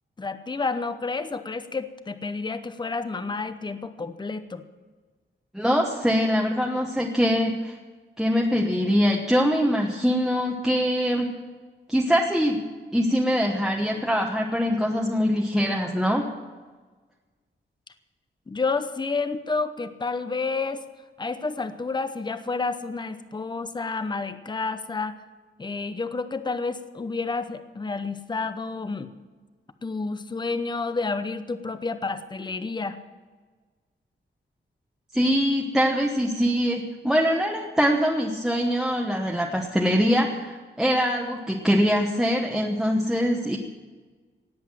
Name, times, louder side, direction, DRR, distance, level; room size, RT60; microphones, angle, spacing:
voice 1, 0.2-4.6 18.5-20.8 21.2-25.2 25.6-29.1 29.8-33.0, left 4 dB, 20° left, 10 dB, 0.8 m, -30 dB
voice 2, 5.5-7.7 8.2-11.3 11.9-12.6 12.9-16.3 35.1-43.6, equal, ahead, -1 dB, 1.1 m, -23 dB
18.5 x 8.1 x 8.8 m, 1.4 s
wide cardioid pair, 170°, 20 cm